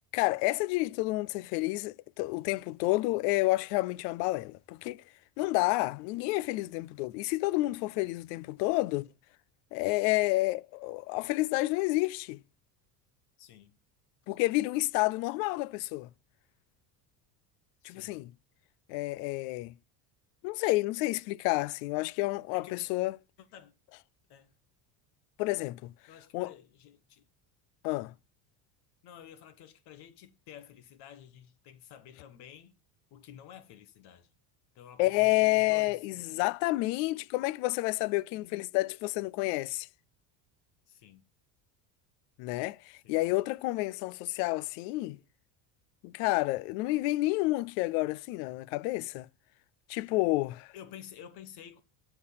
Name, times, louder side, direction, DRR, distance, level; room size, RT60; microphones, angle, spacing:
voice 1, 0.1-5.0 5.4-9.1 9.7-12.4 14.3-16.1 17.8-18.3 18.9-19.7 20.4-23.2 25.4-25.9 26.3-26.5 27.8-28.1 35.0-39.9 42.4-45.2 46.0-49.3 49.9-50.7, left 20 dB, 80° left, 0.6 m, -29 dB
voice 2, 13.4-13.8 17.8-18.2 22.5-22.7 23.5-23.7 24.3-24.5 26.1-27.2 29.0-32.7 33.1-34.3 34.7-36.1 40.9-41.2 43.0-43.2 50.7-51.8, left 9 dB, 55° left, 1.3 m, -51 dB
12.5 x 4.6 x 5.7 m
cardioid pair, 130°, 47 cm